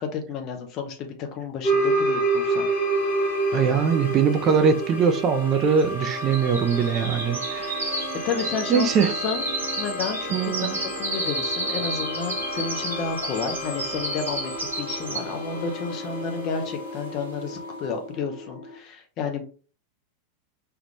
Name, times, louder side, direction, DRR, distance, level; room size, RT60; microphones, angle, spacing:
voice 1, 0.0-2.7 8.2-19.4, left 5 dB, 40° left, 0.7 m, -31 dB
sound 1, 1.6-18.8, right 2 dB, 60° left, 1.1 m, -30 dB
voice 2, 3.5-7.7 8.7-9.1 10.3-10.8, right 6 dB, 30° right, 0.5 m, -22 dB
sound 2, 3.8-3.9 4.1-15.5 15.9-16.2 16.7-16.8, right 1 dB, 75° right, 1.1 m, -32 dB
3.4 x 2.4 x 3.0 m
figure-of-eight pair, 90°, 0 cm